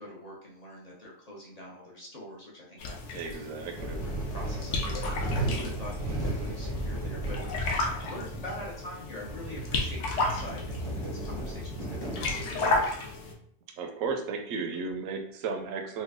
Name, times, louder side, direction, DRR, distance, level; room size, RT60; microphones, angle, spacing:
voice 1, 0.0-3.5 3.9-12.9, left 1 dB, 40° left, -4 dB, 0.6 m, -44 dB
sound 1, 2.8-13.3, left 2 dB, 70° left, 0.9 m, -34 dB
voice 2, 3.1-3.9 13.8-16.0, right 4 dB, 85° right, 4 dB, 1.0 m, -34 dB
sound 2, 3.8-12.8, right 1 dB, 25° right, 0.6 m, -35 dB
3.1 x 2.2 x 3.5 m, 0.66 s
omnidirectional pair, 1.3 m